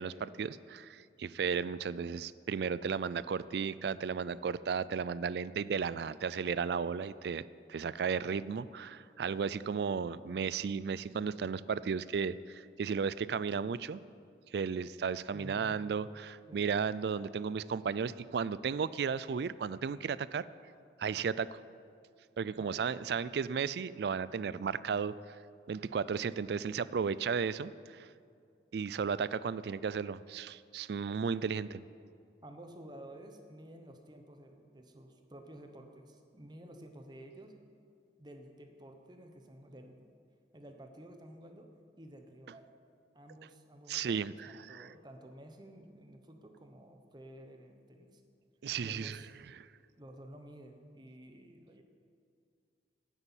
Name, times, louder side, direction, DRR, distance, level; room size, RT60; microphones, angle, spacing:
voice 1, 0.0-7.4 7.7-14.0 14.5-20.4 21.0-21.6 22.4-25.1 25.7-28.1 28.7-31.8 43.9-44.9 48.6-49.2 49.6-49.7, right 6 dB, 65° right, 18 dB, 0.3 m, -34 dB
voice 2, 15.3-15.8 16.5-16.8 22.5-22.9 32.4-37.6 38.2-40.0 40.5-41.7 42.0-42.7 43.1-48.2 48.8-49.3 50.0-51.8, right 1 dB, 25° right, 5 dB, 1.0 m, -52 dB
10.0 x 8.1 x 8.9 m, 2.3 s
head